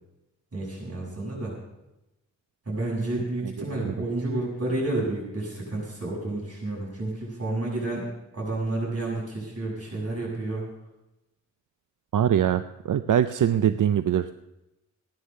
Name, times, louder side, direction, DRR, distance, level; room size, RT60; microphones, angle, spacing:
voice 1, 0.5-1.5 2.7-8.1 8.3-10.6, right 2 dB, 50° right, -4 dB, 7.0 m, -30 dB
voice 2, 12.1-14.3, right 9 dB, 90° right, 11 dB, 0.5 m, -23 dB
16.0 x 9.8 x 6.5 m, 0.92 s
wide cardioid pair, 125°, 30 cm